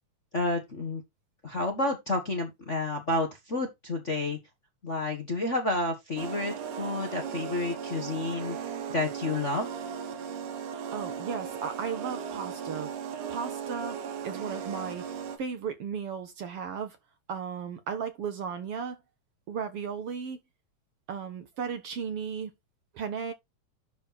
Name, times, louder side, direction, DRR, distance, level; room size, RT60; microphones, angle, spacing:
voice 1, 0.3-1.0 1.4-4.4 4.8-9.7, left 2 dB, 35° left, 1.3 m, -30 dB
sound 1, 6.2-15.4, right 7 dB, 80° right, 2.8 m, -37 dB
voice 2, 10.9-12.9 13.3-15.1 15.4-17.0 17.3-19.0 19.5-20.4 21.1-22.5 22.9-23.3, right 6 dB, 60° right, 1.9 m, -35 dB
11.5 x 4.5 x 4.2 m
omnidirectional pair, 3.5 m